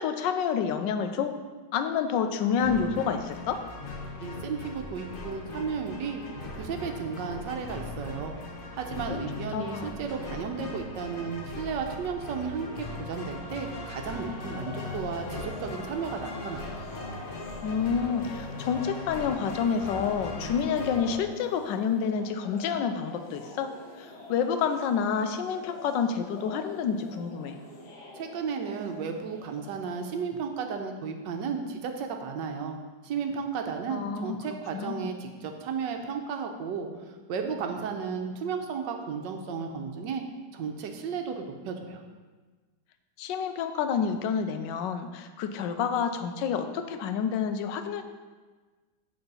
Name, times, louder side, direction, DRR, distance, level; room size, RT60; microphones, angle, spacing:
voice 1, 0.0-1.3 1.7-3.6 9.1-9.2 9.5-9.9 17.6-23.7 24.0-27.6 33.9-34.4 34.7-35.1 43.2-48.0, left 7 dB, 90° left, 8 dB, 1.3 m, -29 dB
sound 1, 2.6-21.2, left 2 dB, 45° left, 0.7 m, -39 dB
voice 2, 4.2-6.2 6.6-8.4 8.7-16.8 28.2-32.8 33.0-40.2 40.5-42.0, right 6 dB, 80° right, 4 dB, 1.4 m, -34 dB
sound 2, 14.5-30.7, left 2 dB, 70° left, 1.9 m, -46 dB
7.9 x 4.0 x 5.4 m, 1.4 s
omnidirectional pair, 1.9 m